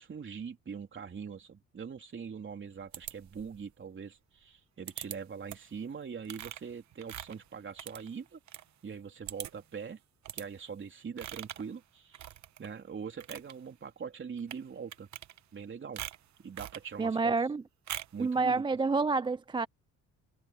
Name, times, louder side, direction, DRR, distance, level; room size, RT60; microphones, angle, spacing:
voice 1, 0.0-8.4 8.8-10.0 10.3-12.3 12.6-15.1 15.5-16.0 16.4-17.3 18.1-18.6, right 6 dB, 40° right, 3.2 m, -42 dB
sound 1, 2.9-3.6 4.9-5.2 5.5-5.8 6.2-8.6 8.9-9.0 9.3-9.7 10.2-10.5 11.2-11.7 12.1-12.7 13.1-13.5 14.4-14.6 14.9-15.6 16.0-16.9 17.9-18.2, right 12 dB, 70° right, 1.1 m, -43 dB
voice 2, 17.0-17.6 18.2-19.7, right 4 dB, 15° right, 0.3 m, -28 dB
cardioid pair, 90°, 30 cm